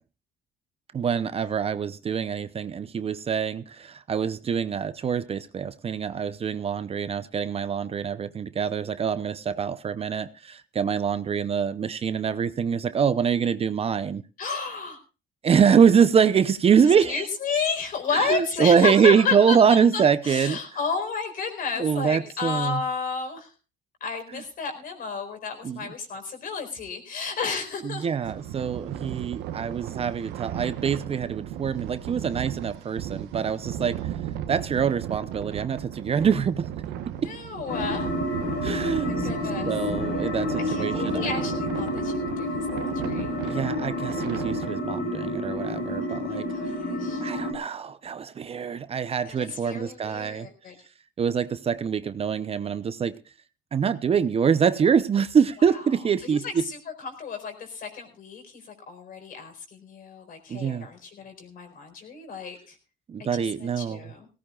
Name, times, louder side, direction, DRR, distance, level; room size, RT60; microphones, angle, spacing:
voice 1, 0.9-14.2 15.4-17.2 18.1-20.6 21.8-22.8 25.6-25.8 27.8-34.0 34.5-36.7 37.1-37.3 38.6-39.3 39.7-41.3 43.4-46.5 47.2-50.5 51.2-53.2 53.7-56.6 60.5-60.9 63.1-64.1, right 7 dB, 35° right, 0.7 m, -24 dB
voice 2, 14.4-15.0 17.0-23.5 24.0-28.2 37.1-38.1 38.8-39.7 40.6-43.3 45.9-47.2 49.2-50.8 56.2-62.8 63.2-64.3, left 5 dB, 55° left, 4.6 m, -32 dB
sound 1, 28.2-44.7, right 11 dB, 90° right, 1.1 m, -35 dB
sound 2, 37.7-47.5, left 1 dB, 85° left, 5.1 m, -29 dB
18.5 x 17.0 x 2.4 m
cardioid pair, 110°, 17 cm